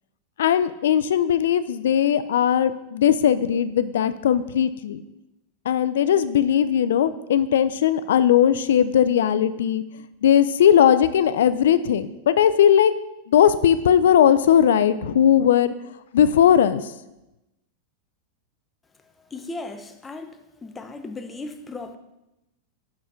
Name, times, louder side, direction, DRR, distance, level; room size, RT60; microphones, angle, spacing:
voice 1, 0.4-5.0 5.7-9.8 10.2-12.9 13.3-15.7 16.1-16.8, left 9 dB, 85° left, 13 dB, 0.3 m, -18 dB
voice 2, 19.0-22.0, left 2 dB, 15° left, 7 dB, 0.6 m, -37 dB
5.8 x 5.5 x 5.0 m, 0.94 s
supercardioid pair, 145°, 0 cm